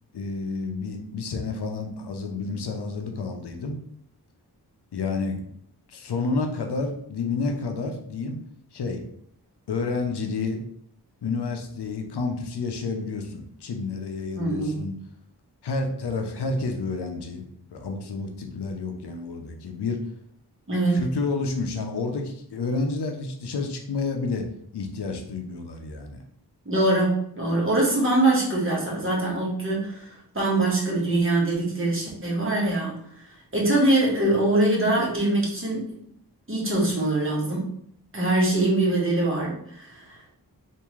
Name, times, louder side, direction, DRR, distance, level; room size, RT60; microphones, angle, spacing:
voice 1, 0.1-3.8 4.9-5.4 5.9-8.4 8.7-9.0 9.7-10.6 11.2-14.9 15.6-17.4 17.7-20.0 20.9-24.5 24.7-26.2, left 3 dB, 85° left, 4 dB, 0.6 m, -30 dB
voice 2, 14.3-14.8 20.7-21.0 26.6-33.0 33.5-36.0 36.5-37.7 38.1-40.2, right 2 dB, 30° right, -4 dB, 1.3 m, -23 dB
3.5 x 2.6 x 3.1 m, 0.68 s
cardioid pair, 50°, 39 cm